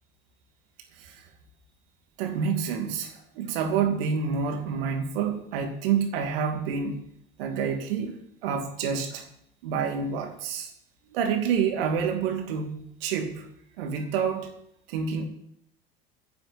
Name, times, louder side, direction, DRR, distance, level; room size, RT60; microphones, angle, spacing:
voice 1, 0.9-1.3 2.2-7.0 7.4-8.1 8.4-9.3 9.6-10.7 11.1-13.5 13.8-14.5 14.9-15.3, right 6 dB, 75° right, 3 dB, 2.5 m, -28 dB
11.0 x 7.0 x 9.2 m, 0.72 s
hypercardioid pair, 70°, 29 cm